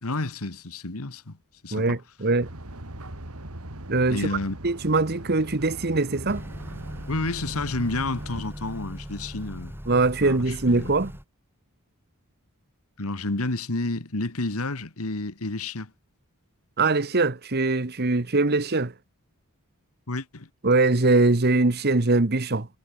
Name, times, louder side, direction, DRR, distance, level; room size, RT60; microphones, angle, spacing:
voice 1, 0.0-1.4 1.6-2.0 4.1-4.6 7.1-9.8 10.2-10.9 13.0-15.9 20.1-20.5, left 2 dB, 75° left, 1.8 m, -30 dB
voice 2, 1.7-2.5 3.9-4.3 4.6-6.4 9.9-11.1 16.8-18.9 20.6-22.7, right 3 dB, 45° right, 1.2 m, -22 dB
sound 1, 2.4-8.4, right 1 dB, 80° right, 3.3 m, -40 dB
Motor vehicle (road) / Accelerating revving vroom, 6.3-11.2, equal, 10° right, 2.8 m, -39 dB
head